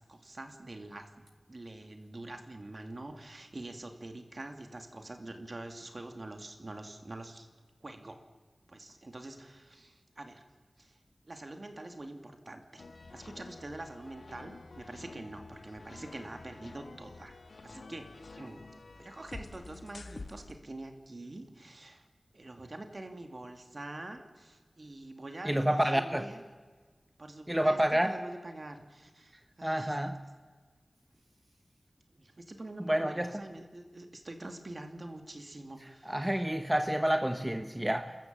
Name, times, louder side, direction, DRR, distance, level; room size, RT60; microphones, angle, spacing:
voice 1, 0.0-7.5 7.8-8.2 8.7-10.4 10.8-11.0 11.3-17.4 17.6-18.1 18.4-18.7 18.9-22.1 22.3-26.4 27.2-30.0 32.1-36.4, right 2 dB, 50° right, 5 dB, 2.5 m, -45 dB
sound 1, 12.8-20.5, left 3 dB, 80° left, 1.4 m, -49 dB
voice 2, 25.4-26.3 27.5-28.2 29.6-30.2 32.8-33.4 36.0-38.2, right 1 dB, 15° right, 7 dB, 1.1 m, -29 dB
29.5 x 13.5 x 7.5 m, 1.4 s
wide cardioid pair, 65°, 0 cm